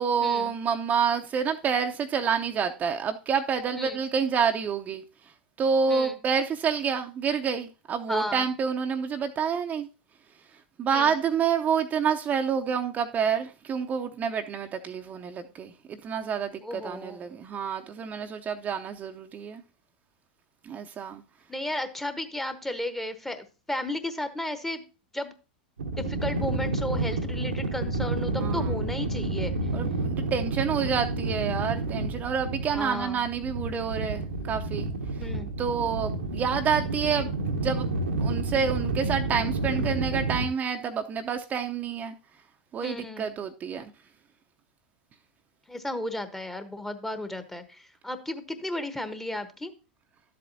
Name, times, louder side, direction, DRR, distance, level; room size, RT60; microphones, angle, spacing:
voice 1, 0.0-9.9 10.8-19.6 20.6-21.2 28.4-28.8 29.7-34.9 35.6-37.3 37.5-37.9 38.2-42.2 42.7-43.9, right 6 dB, 30° right, 0.7 m, -28 dB
voice 2, 8.1-8.4 10.9-11.1 16.6-17.4 21.5-24.8 25.1-25.3 25.9-29.6 32.7-33.2 35.2-35.5 42.8-43.3 45.7-49.7, left 1 dB, 5° left, 1.0 m, -34 dB
sound 1, 25.8-40.5, right 2 dB, 85° right, 1.1 m, -30 dB
12.0 x 7.7 x 2.7 m
hypercardioid pair, 95°, 5 cm